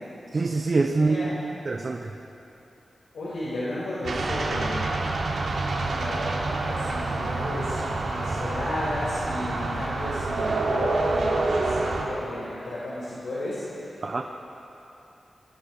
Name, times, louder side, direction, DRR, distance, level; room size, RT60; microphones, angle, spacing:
voice 1, 0.3-2.1 14.0-14.2, right 3 dB, 45° right, 4 dB, 1.0 m, -25 dB
voice 2, 0.9-1.4 3.1-5.1 5.8-14.2, left 1 dB, 85° left, -8 dB, 5.6 m, -34 dB
sound 1, 4.0-12.1, right 2 dB, 75° right, 3.6 m, -27 dB
25.5 x 22.5 x 5.0 m, 2.9 s
wide cardioid pair, 105°, 0 cm